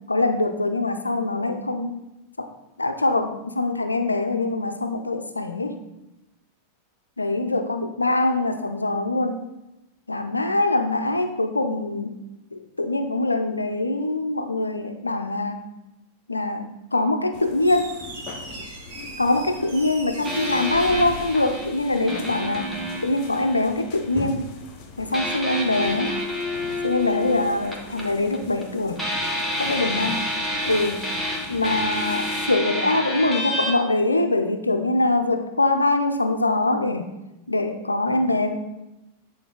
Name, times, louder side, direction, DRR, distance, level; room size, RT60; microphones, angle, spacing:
voice 1, 0.1-2.0 2.4-2.5 2.8-5.8 7.2-9.5 10.1-12.1 12.5-15.6 16.3-18.0 19.2-22.7 23.0-24.5 25.0-26.1 26.8-29.0 29.6-30.2 30.6-31.0 31.5-37.1 37.5-38.5, left 2 dB, 80° left, 8 dB, 0.5 m, -23 dB
sound 1, 17.3-32.5, left 4 dB, 40° left, 0.8 m, -42 dB
Squeak, 17.6-22.2, right 2 dB, 60° right, 1.4 m, -39 dB
sound 2, 20.2-24.1 25.1-28.7 29.0-33.7, left 1 dB, 5° right, 1.5 m, -29 dB
9.1 x 3.9 x 3.7 m, 0.95 s
figure-of-eight pair, 90°, 0 cm